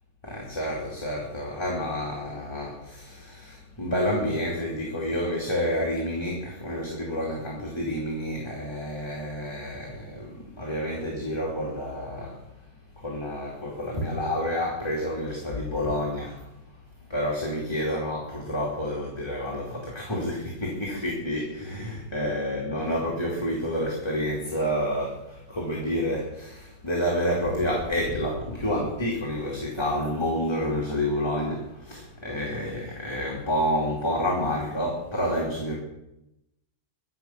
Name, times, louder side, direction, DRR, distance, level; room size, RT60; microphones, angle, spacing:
voice 1, 0.2-12.4 13.0-16.5 17.1-35.8, equal, 15° left, -3 dB, 2.9 m, -29 dB
23.5 x 8.1 x 5.9 m, 0.88 s
omnidirectional pair, 1.9 m